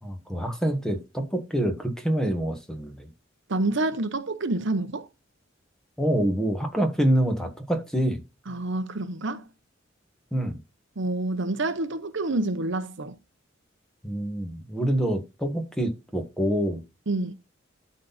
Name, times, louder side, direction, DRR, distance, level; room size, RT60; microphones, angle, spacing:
voice 1, 0.0-3.1 6.0-8.2 10.3-10.5 14.0-16.8, right 1 dB, 5° left, 1.6 m, -26 dB
voice 2, 3.5-5.1 8.5-9.5 11.0-13.2 17.1-17.3, right 2 dB, 65° right, 0.9 m, -28 dB
12.5 x 4.2 x 4.1 m
head